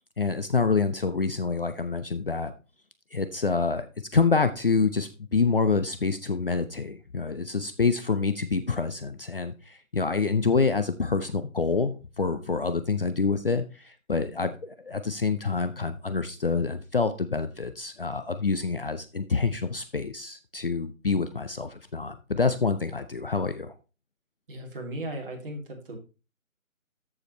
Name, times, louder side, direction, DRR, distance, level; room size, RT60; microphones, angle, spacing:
voice 1, 0.2-2.5 3.1-3.9 4.1-23.7, left 4 dB, 45° left, 10 dB, 0.6 m, -27 dB
voice 2, 24.5-26.0, right 1 dB, 40° right, 1 dB, 2.8 m, -36 dB
13.5 x 4.9 x 3.1 m, 0.31 s
figure-of-eight pair, 155°, 41 cm